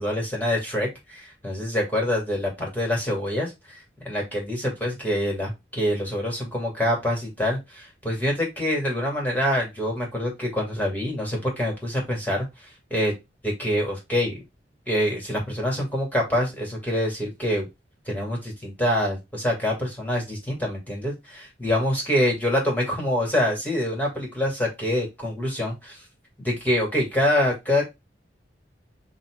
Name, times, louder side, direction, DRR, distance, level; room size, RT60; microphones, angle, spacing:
voice 1, 0.0-13.1 13.4-14.4 14.9-17.7 18.1-26.0 26.4-27.8, left 1 dB, 10° left, -1 dB, 2.3 m, -26 dB
7.4 x 2.8 x 2.3 m, 0.21 s
head